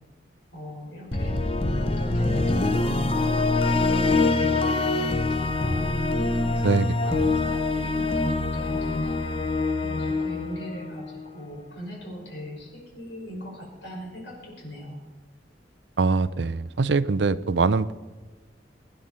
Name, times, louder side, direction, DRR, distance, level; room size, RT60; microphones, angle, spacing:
voice 1, 0.5-5.9 6.3-6.8 7.0-9.2 9.8-15.0, equal, 90° left, -1 dB, 5.7 m, -40 dB
sound 1, 1.1-11.3, left 2 dB, 30° left, 0.9 m, -24 dB
voice 2, 6.6-7.2 16.0-17.9, right 4 dB, 75° right, 16 dB, 0.6 m, -23 dB
23.5 x 10.0 x 4.3 m, 1.3 s
head